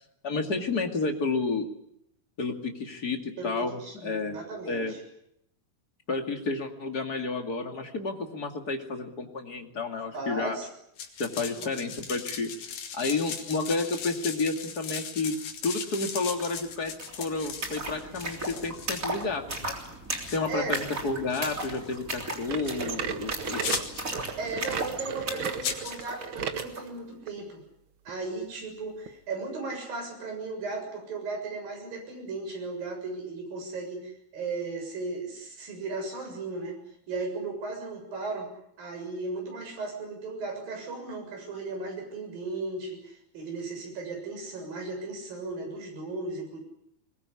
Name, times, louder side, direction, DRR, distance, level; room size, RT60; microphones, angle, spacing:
voice 1, 0.2-1.7 2.4-4.4 4.7-4.9 6.1-10.6 11.2-16.9 17.2-19.7 20.3-23.7, left 3 dB, 30° left, 4 dB, 2.4 m, -31 dB
voice 2, 3.4-5.0 9.8-9.9 10.1-10.7 11.6-11.7 20.2-20.7 21.4-21.5 24.4-27.6 28.1-36.8 37.1-38.5 38.8-46.6, right 3 dB, 70° right, 3 dB, 8.8 m, -36 dB
sound 1, 11.0-19.3 19.7-19.9 20.2-20.4 21.3-22.0 22.7-22.8 23.6-24.1 25.6-26.1, left 7 dB, 80° left, 4.2 m, -37 dB
sound 2, 16.4-16.5 16.7-26.9, right 2 dB, 20° right, 3.6 m, -37 dB
sound 3, 22.5-26.7 27.3-27.4 28.1-28.2 29.1-29.2, right 7 dB, 55° right, 1.4 m, -34 dB
22.0 x 21.0 x 9.9 m, 0.76 s
omnidirectional pair, 4.2 m